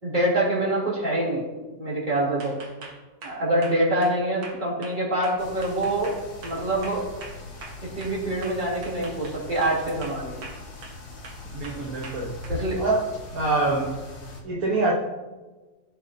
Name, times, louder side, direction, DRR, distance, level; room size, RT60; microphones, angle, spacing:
voice 1, 0.0-1.4 1.8-2.5 3.2-6.1 6.4-7.0 7.8-10.5 12.5-12.8, right 1 dB, 25° right, -7 dB, 3.2 m, -25 dB
sound 1, 2.4-8.2 8.4-9.8 10.0-11.0 11.2-12.6, right 3 dB, 80° right, 2.1 m, -42 dB
sound 2, 5.4-14.4, left 2 dB, 85° left, 2.8 m, -40 dB
voice 2, 11.5-12.3 12.8-13.0 13.3-14.0 14.4-15.0, right 2 dB, 55° right, -2 dB, 1.5 m, -25 dB
16.0 x 6.3 x 2.8 m, 1.2 s
omnidirectional pair, 2.0 m